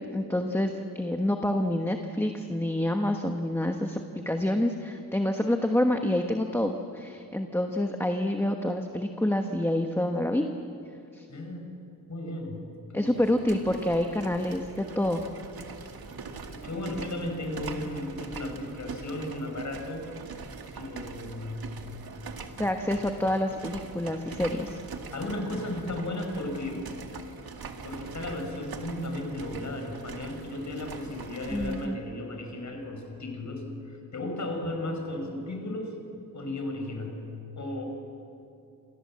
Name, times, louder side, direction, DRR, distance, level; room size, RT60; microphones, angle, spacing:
voice 1, 0.1-4.0 4.2-10.5 11.1-11.3 12.9-15.2 22.6-24.7 31.5-32.0, left 1 dB, 5° left, 4 dB, 1.2 m, -27 dB
voice 2, 11.3-11.8 12.1-13.1 15.8-15.9 16.5-20.0 20.7-21.8 24.4-24.6 25.0-26.8 27.8-35.9 36.3-37.3 37.6-37.8, left 1 dB, 50° left, 3 dB, 5.6 m, -35 dB
sound 1, 13.1-31.9, right 4 dB, 80° right, 2.1 m, -42 dB
28.5 x 27.5 x 7.6 m, 2.6 s
wide cardioid pair, 170°, 36 cm